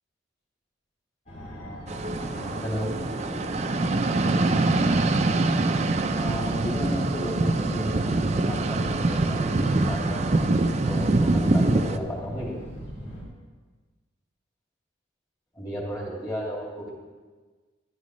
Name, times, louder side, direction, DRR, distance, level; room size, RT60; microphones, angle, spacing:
Fixed-wing aircraft airplane, 1.3-13.2, equal, 40° left, 2.7 m, -39 dB
sound 1, 1.9-12.0, right 2 dB, 35° right, 0.4 m, -24 dB
voice 1, 2.6-3.0 6.1-10.5 10.8-12.6 15.6-16.9, equal, 20° left, -4 dB, 2.6 m, -33 dB
13.5 x 11.5 x 3.2 m, 1.4 s
head